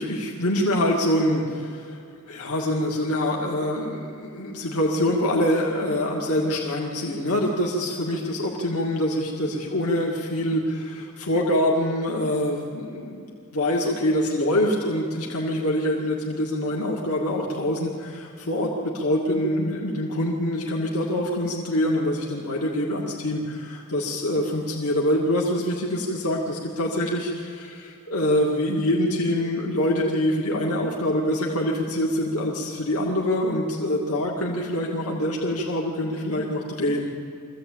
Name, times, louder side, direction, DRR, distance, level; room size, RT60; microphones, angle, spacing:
voice 1, 0.0-2.0 2.3-13.2 13.5-37.1, left 1 dB, 85° left, -2 dB, 2.3 m, -25 dB
24.0 x 15.5 x 8.7 m, 2.4 s
head